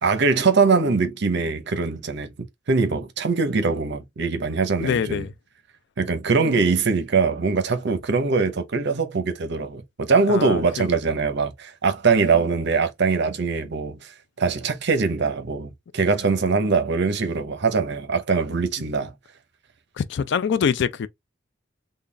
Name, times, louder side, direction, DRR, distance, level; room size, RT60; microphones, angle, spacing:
voice 1, 0.0-2.3 2.7-5.2 6.0-14.1 14.4-19.1, right 4 dB, 60° right, 0.7 m, -22 dB
voice 2, 4.8-5.3 10.3-10.9 20.0-21.1, left 7 dB, 60° left, 0.4 m, -24 dB
3.8 x 2.2 x 3.3 m
head